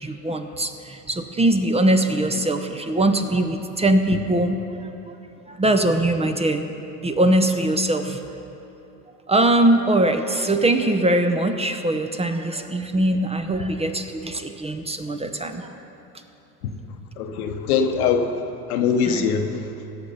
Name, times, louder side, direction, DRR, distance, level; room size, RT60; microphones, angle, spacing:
voice 1, 0.0-4.6 5.5-6.6 7.0-8.2 9.3-15.7 19.1-19.2, right 1 dB, 15° right, 7 dB, 0.7 m, -21 dB
voice 2, 17.2-18.3 18.7-19.6, left 6 dB, 75° left, 6 dB, 1.0 m, -22 dB
16.5 x 6.5 x 5.6 m, 2.9 s
hypercardioid pair, 75°, 45 cm